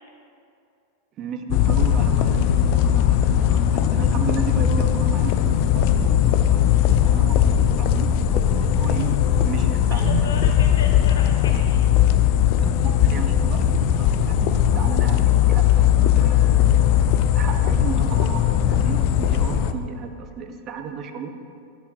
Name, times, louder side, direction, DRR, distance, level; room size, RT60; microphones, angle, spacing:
voice 1, 1.2-9.1 9.5-10.2 12.6-15.9 16.2-16.8 17.4-21.3, right 6 dB, 35° right, 6 dB, 0.6 m, -33 dB
sound 1, 1.5-19.7, left 10 dB, 45° left, 0.4 m, -19 dB
voice 2, 9.9-11.9, left 4 dB, 60° left, 3 dB, 0.9 m, -36 dB
11.5 x 10.5 x 2.2 m, 2.5 s
figure-of-eight pair, 90°, 0 cm